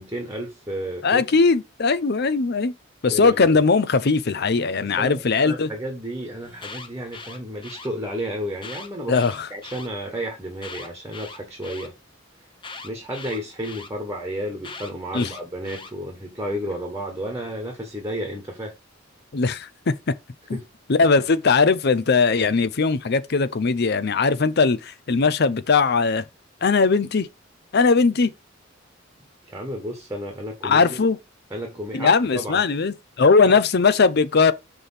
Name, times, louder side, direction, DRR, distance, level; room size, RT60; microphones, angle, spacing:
voice 1, 0.0-1.2 3.1-3.4 4.8-9.2 9.5-11.9 12.8-18.7 20.5-20.6 29.5-31.0 31.5-32.6 33.4-33.6, equal, 15° right, 1.4 m, -32 dB
voice 2, 1.0-2.7 3.0-5.7 9.1-9.5 15.1-15.3 19.3-19.9 20.9-26.2 26.6-27.3 27.7-28.3 30.6-31.2 31.9-34.5, left 4 dB, 55° left, 0.6 m, -19 dB
Alarm, 6.4-7.9 8.5-9.9 10.6-11.9 12.6-13.9 14.6-15.9, left 4 dB, 25° left, 0.9 m, -40 dB
6.1 x 3.4 x 5.6 m
head